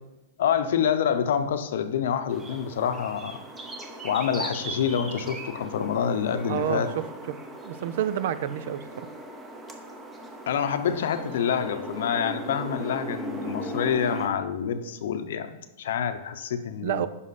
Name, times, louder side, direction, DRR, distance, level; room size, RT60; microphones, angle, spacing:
voice 1, 0.4-3.4 4.0-6.9 10.5-17.1, left 8 dB, 70° left, 10 dB, 0.8 m, -27 dB
sound 1, 2.3-14.3, right 1 dB, 10° right, 0.8 m, -38 dB
voice 2, 6.5-6.8 7.3-7.4 7.6-9.1 16.8-17.1, right 10 dB, 60° right, 14 dB, 0.5 m, -29 dB
9.7 x 5.6 x 4.2 m, 0.98 s
supercardioid pair, 160°, 0 cm